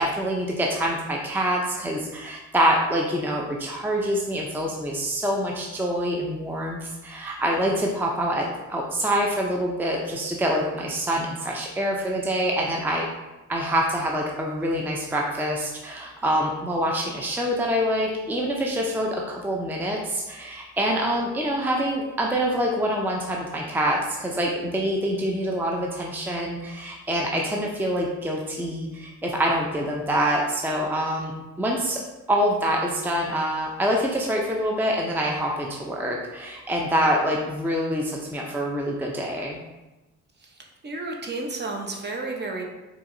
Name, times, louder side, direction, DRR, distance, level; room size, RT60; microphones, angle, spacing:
voice 1, 0.0-13.1 13.5-31.3 31.6-32.0 32.3-39.6, equal, 5° right, -1 dB, 0.5 m, -26 dB
voice 2, 40.4-42.7, right 3 dB, 35° right, 1 dB, 0.8 m, -32 dB
4.6 x 3.8 x 2.6 m, 1.1 s
cardioid pair, 90°, 30 cm